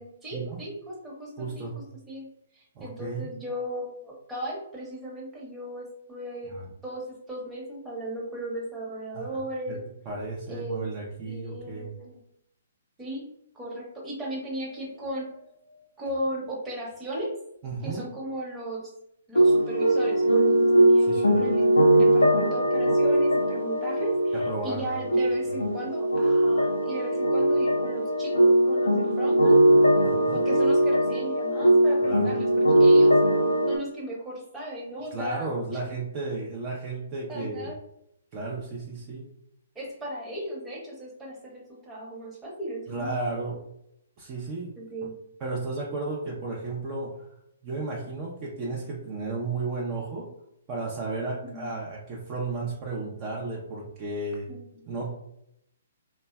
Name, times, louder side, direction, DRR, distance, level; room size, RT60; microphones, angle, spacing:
voice 1, 0.0-2.3 2.5-6.5 6.8-9.8 10.5-10.9 11.3-12.2 13.0-13.2 13.5-15.3 16.0-17.4 17.8-18.9 19.3-29.7 30.3-33.2 33.7-35.5 35.9-36.0 37.3-37.8 39.7-43.1 44.8-45.2 51.4-51.8 54.5-54.8, right 1 dB, 10° right, -4 dB, 0.9 m, -36 dB
voice 2, 1.4-1.8 2.8-3.3 6.5-6.6 9.1-9.3 9.7-9.8 10.1-11.9 17.6-18.2 21.1-21.4 24.5-24.9 25.5-25.6 30.0-30.5 32.0-32.3 35.1-37.7 38.3-39.3 42.9-43.6 44.2-44.7 45.4-47.3 47.6-50.3 50.7-54.5 54.9-55.1, right 3 dB, 35° right, -3 dB, 0.5 m, -33 dB
sound 1, 19.3-33.8, right 1 dB, 85° left, 0.4 m, -21 dB
3.2 x 2.1 x 2.2 m, 0.77 s
figure-of-eight pair, 125°, 0 cm